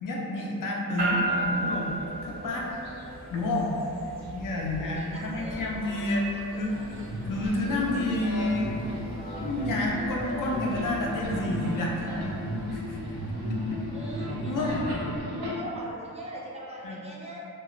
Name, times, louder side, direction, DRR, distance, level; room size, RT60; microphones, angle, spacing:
voice 1, 0.0-1.9 2.2-2.7 3.3-3.8 4.3-6.3 6.6-6.7 7.2-8.7 9.4-12.2 12.7-13.0 14.5-14.8 16.8-17.0, left 1 dB, 55° left, -2 dB, 0.5 m, -29 dB
sound 1, 1.0-15.3, right 1 dB, 45° right, 0.9 m, -37 dB
voice 2, 4.7-6.8 13.9-14.8 15.2-15.3 15.6-17.4, right 1 dB, 15° right, -5 dB, 0.5 m, -42 dB
sound 2, 6.5-15.5, equal, 85° right, 0.7 m, -33 dB
3.0 x 2.0 x 2.4 m, 2.7 s
cardioid pair, 80°, 38 cm